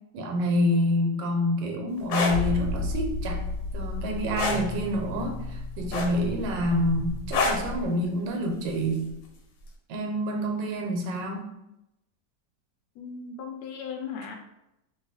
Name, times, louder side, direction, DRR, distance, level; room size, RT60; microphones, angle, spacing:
voice 1, 0.1-3.4 3.7-9.1 9.9-11.4, equal, 80° right, 2 dB, 1.3 m, -27 dB
sound 1, 2.0-2.4 4.4-4.6 5.9-6.4 7.3-7.7 9.1-9.3, left 3 dB, 90° left, 1.4 m, -25 dB
sound 2, 2.3-7.9, left 2 dB, 60° right, 1.1 m, -33 dB
voice 2, 13.0-14.4, left 6 dB, 75° left, 3 dB, 0.9 m, -37 dB
3.0 x 2.3 x 4.0 m, 0.88 s
omnidirectional pair, 2.0 m